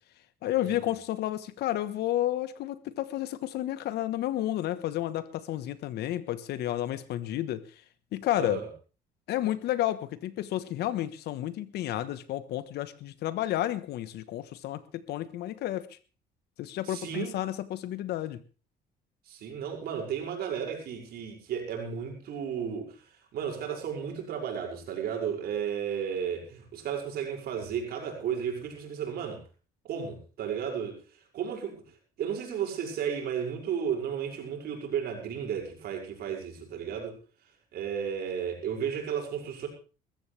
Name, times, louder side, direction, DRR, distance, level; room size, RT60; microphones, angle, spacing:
voice 1, 0.4-7.7 8.1-8.6 9.3-16.0 16.6-18.4, left 13 dB, 75° left, 15 dB, 1.3 m, -31 dB
voice 2, 16.8-17.4 19.3-29.4 29.8-31.0 31.3-31.8 32.2-37.2 37.7-39.7, right 8 dB, 70° right, 1 dB, 6.2 m, -33 dB
21.0 x 14.5 x 3.4 m, 0.35 s
cardioid pair, 110°, 17 cm